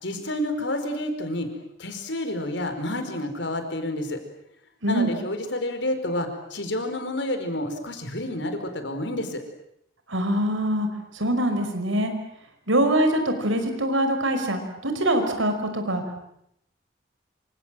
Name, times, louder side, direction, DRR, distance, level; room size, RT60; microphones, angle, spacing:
voice 1, 0.0-1.5 1.8-4.2 4.9-9.4, left 1 dB, 70° left, 7 dB, 5.0 m, -29 dB
voice 2, 4.8-5.1 10.1-10.9 11.2-12.1 12.7-16.0, right 1 dB, 90° right, 7 dB, 5.4 m, -23 dB
27.5 x 26.5 x 7.7 m, 0.76 s
head